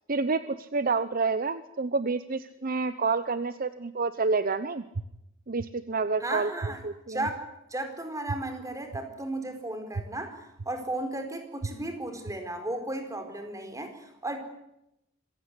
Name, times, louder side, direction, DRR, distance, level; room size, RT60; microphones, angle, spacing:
voice 1, 0.1-4.8 5.5-6.5 6.8-7.3, right 4 dB, 45° right, 13 dB, 0.9 m, -28 dB
sound 1, 4.9-5.0 5.6-5.7 6.6-6.7 7.3-7.4 8.3-8.4 8.9-9.0 9.9-10.0 10.6-10.7 11.6-11.7 12.3-12.4, right 3 dB, 85° right, 1.1 m, -32 dB
voice 2, 6.2-6.8 7.1-14.4, right 1 dB, 15° right, 6 dB, 4.5 m, -35 dB
26.5 x 16.5 x 9.8 m, 0.84 s
head